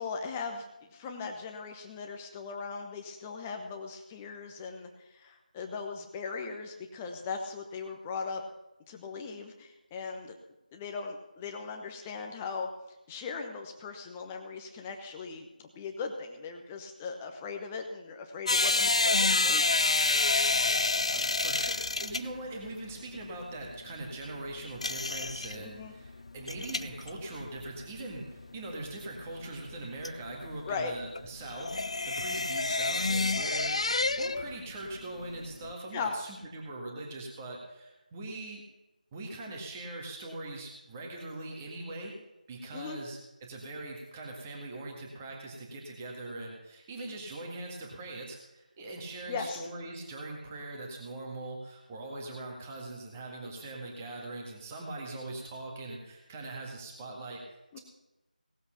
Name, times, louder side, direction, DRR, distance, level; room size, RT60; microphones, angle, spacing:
voice 1, 0.0-8.4 8.9-10.4 10.7-12.7 13.1-19.8 25.6-25.9 30.6-30.9 35.9-36.2 42.7-43.0 49.3-49.7 57.7-57.8, left 5 dB, 10° left, 4 dB, 0.9 m, -39 dB
sound 1, 18.5-34.6 34.8-35.7, left 3 dB, 40° left, 0.5 m, -29 dB
voice 2, 20.4-20.7 21.1-33.7 34.2-38.6 39.1-42.1 42.5-57.8, right 2 dB, 15° right, -1 dB, 1.8 m, -41 dB
18.0 x 8.0 x 5.9 m, 1.0 s
figure-of-eight pair, 165°, 5 cm